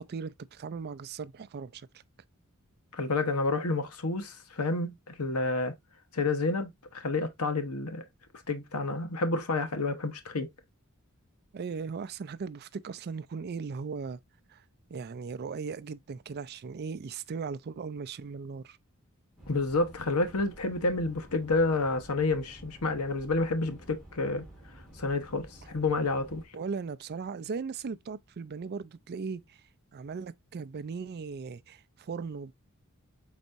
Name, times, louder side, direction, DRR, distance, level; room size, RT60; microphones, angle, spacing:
voice 1, 0.0-1.9 11.5-14.2 14.5-14.6 14.9-18.8 26.5-29.6 29.9-32.5, right 5 dB, 45° right, 0.4 m, -38 dB
voice 2, 2.9-5.7 6.1-8.0 8.5-10.5 19.5-24.4 25.0-26.4, left 3 dB, 80° left, 1.0 m, -29 dB
sound 1, 19.4-26.4, right 1 dB, ahead, 1.9 m, -51 dB
4.5 x 4.1 x 2.5 m
head